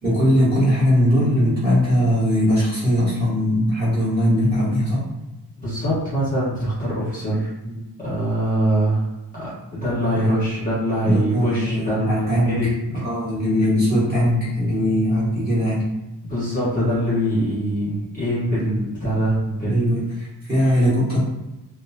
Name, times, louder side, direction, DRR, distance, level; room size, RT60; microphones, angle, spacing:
voice 1, 0.0-5.0 7.6-7.8 10.1-10.6 11.0-15.8 19.6-21.2, equal, 20° right, -11 dB, 1.5 m, -20 dB
voice 2, 5.6-7.5 8.0-9.0 9.3-12.7 16.2-20.0, right 1 dB, 20° left, -12 dB, 1.3 m, -23 dB
3.0 x 2.2 x 2.7 m, 1.0 s
wide cardioid pair, 160°, 43 cm